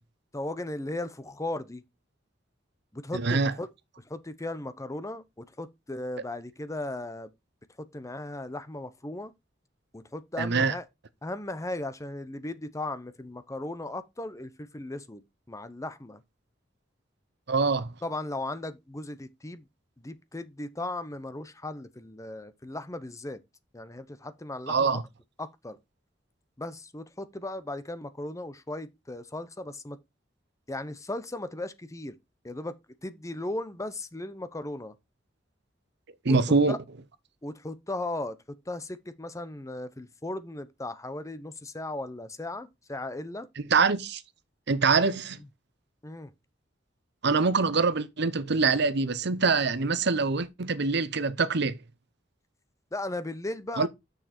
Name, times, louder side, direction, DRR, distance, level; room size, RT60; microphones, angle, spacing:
voice 1, 0.3-1.8 2.9-3.7 4.1-7.3 7.9-9.3 9.9-10.8 11.2-16.2 18.0-19.6 20.0-23.4 23.7-25.0 25.4-25.8 26.6-30.0 30.7-32.2 32.4-32.7 33.0-34.9 36.3-36.8 37.4-38.4 38.7-43.5 46.0-46.3 52.9-53.9, left 2 dB, 15° left, 0.8 m, -36 dB
voice 2, 3.1-3.5 10.4-10.8 17.5-17.9 24.7-25.0 36.2-36.8 43.6-44.2 44.7-45.4 47.2-51.8 53.8-53.9, right 4 dB, 60° right, 0.8 m, -24 dB
6.6 x 6.5 x 4.3 m
head